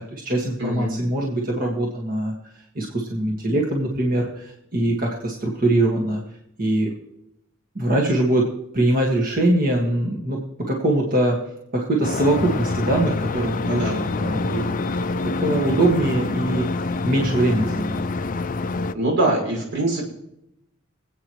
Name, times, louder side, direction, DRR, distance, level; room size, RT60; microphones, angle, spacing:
voice 1, 0.0-2.3 2.8-6.2 6.6-6.9 7.8-11.4 11.7-14.8 15.2-18.0, right 1 dB, 40° right, -1 dB, 1.9 m, -22 dB
voice 2, 0.6-0.9 13.6-14.0 18.9-20.1, right 1 dB, 60° right, 0 dB, 5.8 m, -23 dB
sound 1, 12.0-18.9, left 3 dB, 40° left, 0.5 m, -26 dB
25.0 x 8.8 x 3.2 m, 0.81 s
head